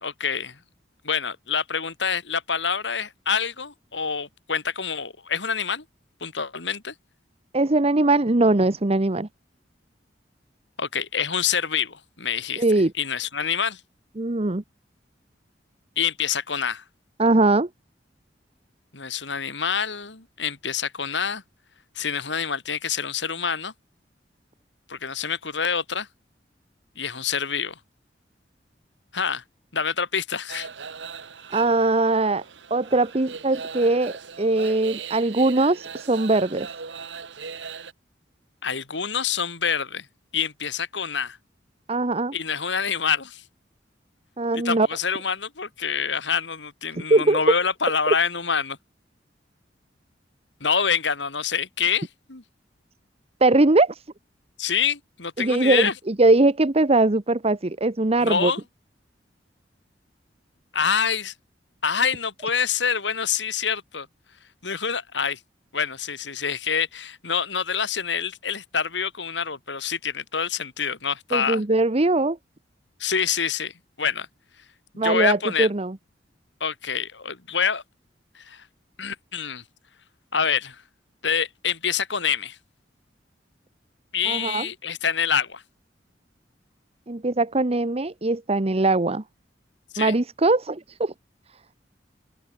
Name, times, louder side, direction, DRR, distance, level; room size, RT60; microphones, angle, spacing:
voice 1, 0.0-0.6 1.0-5.8 6.2-6.9 10.8-12.6 13.0-13.8 16.0-16.8 18.9-21.4 22.0-23.7 24.9-26.1 27.0-27.8 29.1-29.4 29.7-30.7 38.6-40.1 40.3-41.4 42.3-43.4 44.6-48.8 50.6-52.4 54.6-55.9 58.2-58.6 60.7-61.3 61.8-64.1 64.6-65.4 65.7-71.6 73.0-73.7 74.0-74.3 74.9-75.7 76.6-77.8 78.3-78.6 79.0-79.6 80.3-80.8 81.2-82.6 84.1-85.6 89.9-90.1, left 6 dB, 75° left, 2.8 m, -26 dB
voice 2, 7.5-9.3 12.6-12.9 14.2-14.6 17.2-17.7 31.5-32.4 32.7-36.7 41.9-42.3 44.4-44.9 47.1-47.4 53.4-54.0 55.4-58.5 71.3-72.4 75.0-76.0 84.3-84.7 87.1-89.2 90.0-91.1, right 2 dB, 35° right, 1.0 m, -21 dB
sound 1, 30.5-37.9, right 5 dB, 85° right, 1.6 m, -38 dB
open air
head